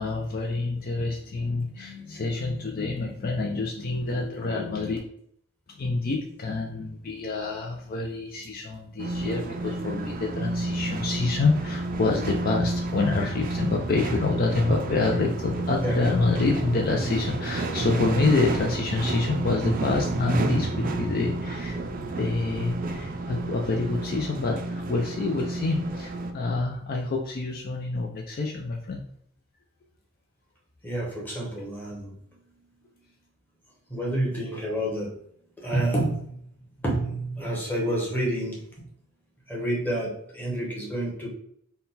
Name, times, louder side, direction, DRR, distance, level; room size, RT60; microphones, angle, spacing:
voice 1, 0.0-5.0 5.7-29.0, left 3 dB, 45° left, 1 dB, 0.4 m, -27 dB
sound 1, 9.0-26.3, right 2 dB, 40° right, 0.4 m, -30 dB
voice 2, 30.8-32.1 33.9-35.1 35.6-36.4 36.8-38.6 39.5-41.3, right 1 dB, 10° left, -4 dB, 1.1 m, -28 dB
3.9 x 2.2 x 4.0 m, 0.68 s
head